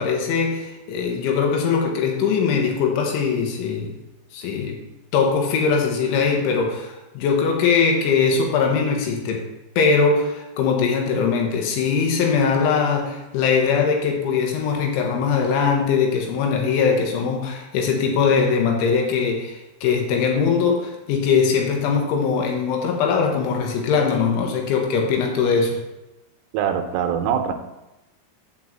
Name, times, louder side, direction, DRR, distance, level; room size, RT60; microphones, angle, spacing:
voice 1, 0.0-3.9 4.3-4.8 5.1-9.4 9.8-25.8, left 5 dB, 75° left, 1 dB, 3.5 m, -21 dB
voice 2, 26.5-27.5, right 8 dB, 85° right, 6 dB, 3.3 m, -23 dB
8.7 x 4.7 x 7.4 m, 0.97 s
omnidirectional pair, 5.7 m